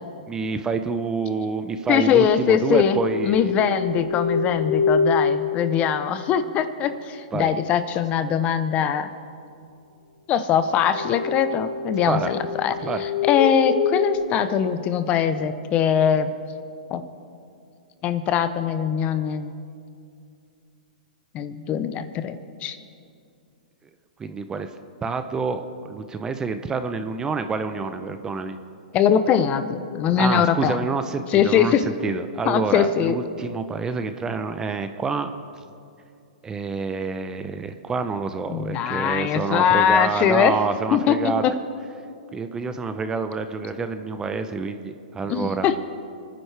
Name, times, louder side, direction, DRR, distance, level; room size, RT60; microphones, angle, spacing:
voice 1, 0.3-3.6 7.3-7.5 12.1-12.3 12.8-13.0 24.2-24.7 25.0-28.6 30.2-35.3 36.4-41.5 42.3-45.7, right 4 dB, 15° right, 9 dB, 0.7 m, -27 dB
voice 2, 1.9-3.0 3.2-9.1 10.3-12.7 13.0-16.3 16.9-17.0 18.0-19.6 21.3-22.8 28.9-30.8 31.3-31.8 32.4-33.2 38.5-40.6 40.9-41.5 45.3-45.8, left 8 dB, 30° left, 11 dB, 0.8 m, -22 dB
sound 1, 2.7-6.4 10.8-15.3, left 4 dB, 60° left, 1.4 m, -26 dB
29.5 x 10.0 x 3.4 m, 2.4 s
hypercardioid pair, 130°, 5 cm